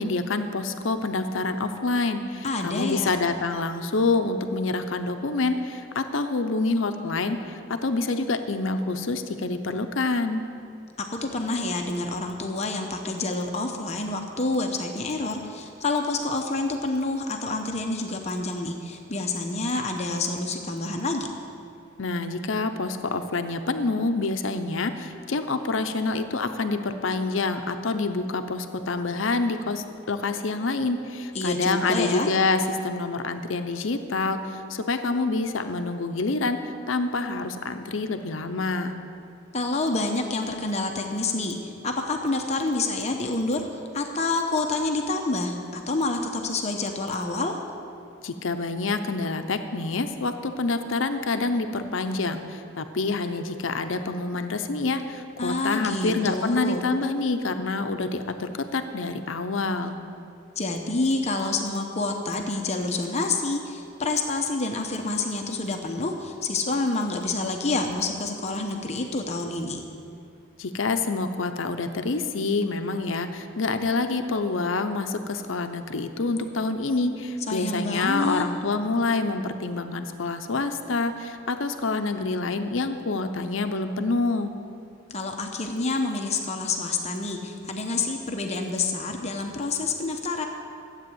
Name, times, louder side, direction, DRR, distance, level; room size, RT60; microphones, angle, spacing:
voice 1, 0.0-10.4 22.0-39.0 48.2-60.0 70.6-84.5, left 3 dB, 75° left, 8 dB, 0.7 m, -27 dB
voice 2, 2.4-3.2 11.0-21.3 31.3-32.3 39.5-47.6 55.4-56.8 60.6-69.8 77.5-78.5 85.1-90.5, left 3 dB, 35° left, 3 dB, 0.9 m, -28 dB
13.0 x 8.4 x 7.9 m, 2.5 s
head